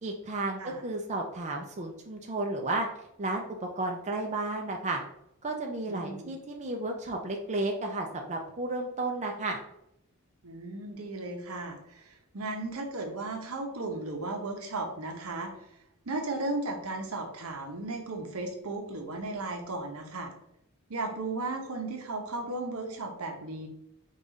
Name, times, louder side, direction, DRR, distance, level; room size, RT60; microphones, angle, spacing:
voice 1, 0.0-2.9 3.2-5.0 5.4-9.6, right 2 dB, 30° right, 1 dB, 0.5 m, -33 dB
voice 2, 5.9-6.3 10.4-15.5 16.1-20.3 20.9-23.7, right 2 dB, 70° right, 3 dB, 0.9 m, -35 dB
5.2 x 2.5 x 4.0 m, 0.78 s
head